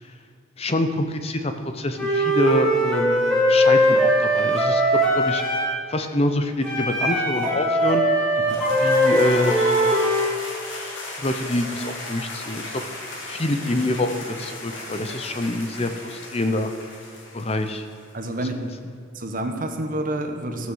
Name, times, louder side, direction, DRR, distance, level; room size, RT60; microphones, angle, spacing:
voice 1, 0.6-4.8 5.1-8.0 8.7-10.0 11.2-12.8 13.3-16.7 17.3-17.9 18.4-18.7, left 1 dB, 30° left, 7 dB, 0.7 m, -26 dB
Wind instrument woodwind instrument, 2.0-5.8 6.6-10.3, equal, 5° left, 2.0 m, -20 dB
sound 1, 8.5-18.3, left 2 dB, 80° left, 2.6 m, -34 dB
voice 2, 18.1-18.5 19.1-20.7, right 1 dB, 45° right, 5 dB, 1.2 m, -28 dB
14.5 x 6.2 x 7.2 m, 2.4 s
head